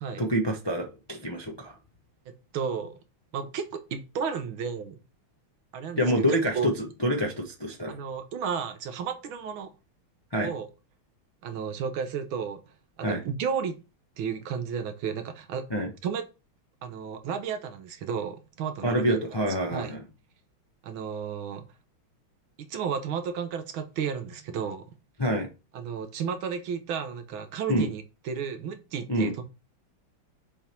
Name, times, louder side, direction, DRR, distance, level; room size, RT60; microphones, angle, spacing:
voice 1, 0.2-1.7 6.0-6.7 7.0-8.0 10.3-10.5 13.0-13.2 15.7-15.9 18.8-20.0 25.2-25.5 27.7-27.9 29.1-29.3, equal, 30° left, 1 dB, 0.4 m, -26 dB
voice 2, 2.3-3.0 3.3-5.0 5.7-6.1 6.5-6.7 7.9-9.7 10.4-10.7 11.4-12.6 13.0-13.7 14.2-15.7 16.0-16.2 16.8-19.2 19.7-19.9 20.8-21.7 22.6-24.9 25.7-29.4, right 7 dB, 80° right, 8 dB, 1.7 m, -33 dB
6.9 x 3.5 x 4.4 m, 0.30 s
omnidirectional pair, 2.2 m